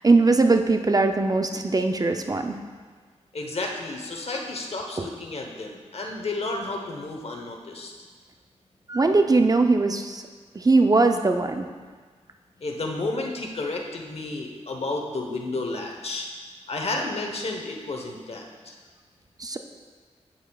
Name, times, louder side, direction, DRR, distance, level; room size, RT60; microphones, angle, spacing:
voice 1, 0.0-2.6 5.0-5.1 8.9-10.2 10.5-11.7 19.4-19.6, right 3 dB, 30° right, 6 dB, 0.5 m, -20 dB
voice 2, 3.3-7.9 12.6-16.3 16.7-18.7, left 2 dB, 60° left, 1 dB, 1.0 m, -31 dB
8.7 x 7.2 x 2.3 m, 1.5 s
cardioid pair, 55°, 12 cm